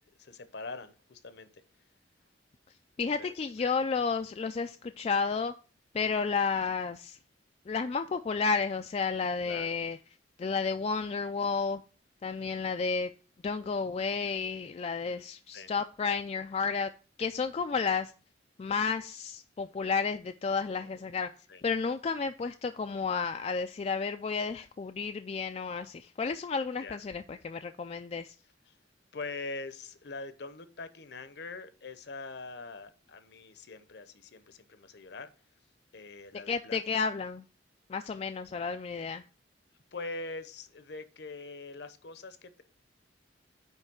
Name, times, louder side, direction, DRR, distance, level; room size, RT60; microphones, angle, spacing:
voice 1, 0.2-1.6 3.2-3.7 6.2-6.3 9.5-9.8 12.4-12.6 15.0-15.2 15.5-15.7 20.5-21.0 21.5-21.6 26.8-27.0 28.7-28.8 29.1-35.3 35.9-36.8 39.9-42.6, left 3 dB, 60° left, 0.8 m, -43 dB
voice 2, 3.0-5.5 5.9-7.2 7.7-10.0 10.4-11.8 12.2-13.1 13.4-16.9 17.2-18.1 18.6-21.3 21.6-28.3 36.5-37.4 37.9-39.2, left 5 dB, 35° left, 0.3 m, -31 dB
9.0 x 3.2 x 6.2 m
head